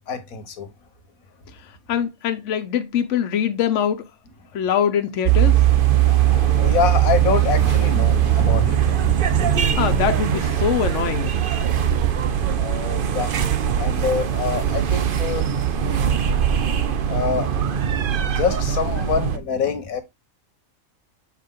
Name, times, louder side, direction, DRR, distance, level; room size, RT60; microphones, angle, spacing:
voice 1, 0.1-0.7 5.8-10.0 12.4-13.3 13.8-15.5 17.1-17.5 18.3-20.0, left 5 dB, 90° left, 1.6 m, -26 dB
voice 2, 1.9-4.0 4.5-5.6 9.8-11.3, left 9 dB, 65° left, 1.1 m, -23 dB
sound 1, 5.3-19.4, right 10 dB, 50° right, 0.7 m, -20 dB
7.4 x 4.9 x 3.7 m
omnidirectional pair, 1.4 m